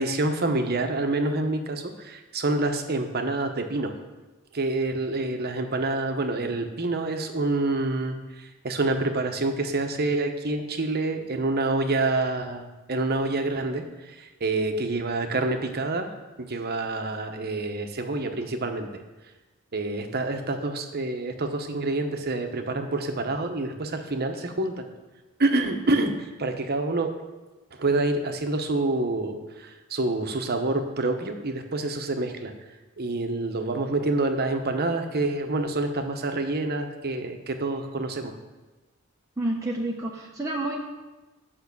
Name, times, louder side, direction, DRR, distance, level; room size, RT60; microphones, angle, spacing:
voice 1, 0.0-4.0 4.5-16.1 16.4-18.9 19.7-24.9 25.4-27.1 27.8-32.5 33.0-38.4, right 2 dB, 50° right, 6 dB, 0.9 m, -27 dB
voice 2, 39.4-40.8, right 1 dB, 15° right, -2 dB, 0.8 m, -29 dB
8.4 x 5.5 x 6.9 m, 1.2 s
head